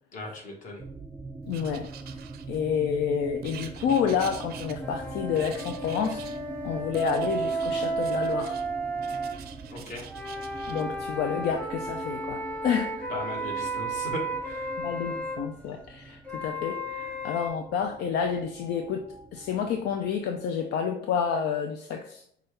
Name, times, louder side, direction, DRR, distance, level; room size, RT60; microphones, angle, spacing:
voice 1, 0.1-0.8 9.7-10.0 13.1-14.7, left 2 dB, 50° left, -1 dB, 1.5 m, -37 dB
sound 1, 0.8-20.6, right 3 dB, 10° right, 0.4 m, -43 dB
voice 2, 1.5-1.9 2.5-6.3 6.6-8.5 10.7-13.1 14.8-22.2, left 7 dB, 75° left, 5 dB, 0.5 m, -29 dB
Writing, 1.5-2.8 3.4-5.1 5.4-6.4 6.9-8.7 9.0-10.8, right 10 dB, 65° right, 0.5 m, -46 dB
sound 2, 4.8-9.4 10.1-15.4 16.3-17.5, right 2 dB, 10° left, 0.9 m, -33 dB
5.8 x 2.3 x 3.2 m, 0.63 s
cardioid pair, 110°, 17 cm